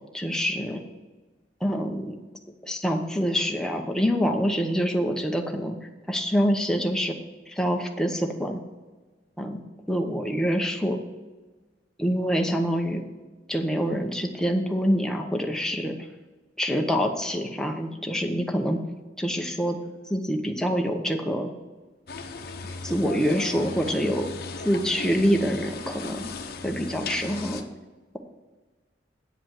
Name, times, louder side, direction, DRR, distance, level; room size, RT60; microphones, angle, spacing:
voice 1, 0.1-0.8 1.6-2.2 2.6-5.8 6.1-7.1 7.5-8.6 9.4-9.6 9.9-11.0 12.0-13.0 13.5-16.0 16.6-18.8 19.2-19.8 20.1-21.5 22.8-24.3 24.6-26.3 26.6-27.6, equal, 5° left, 3 dB, 0.8 m, -26 dB
sound 1, 22.1-27.6, left 4 dB, 55° left, 0.8 m, -37 dB
8.8 x 5.1 x 7.6 m, 1.3 s
head